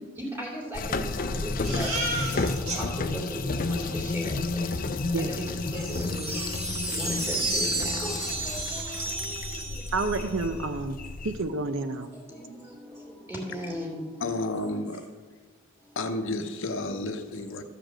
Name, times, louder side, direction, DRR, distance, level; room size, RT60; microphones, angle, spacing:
voice 1, 0.2-1.9 2.8-3.2 3.5-6.4 6.9-9.4 12.3-12.6 12.9-14.0, equal, 10° right, -2 dB, 2.7 m, -37 dB
sound 1, 0.7-11.4, left 3 dB, 40° left, 0.5 m, -32 dB
Crying sobbing, 1.6-2.8 3.2-3.3 3.5-3.9 5.7-5.8 6.3-7.1 7.4-7.6 8.0-8.1 8.4-9.1, right 2 dB, 85° right, 2.2 m, -35 dB
sound 2, 5.8-10.5, right 2 dB, 30° right, 1.8 m, -32 dB
voice 2, 9.9-11.0 11.2-12.1, right 3 dB, 65° right, 9 dB, 0.6 m, -29 dB
voice 3, 14.2-15.0 16.0-17.6, left 2 dB, 65° left, 6 dB, 0.8 m, -31 dB
13.0 x 5.1 x 7.6 m, 1.4 s
head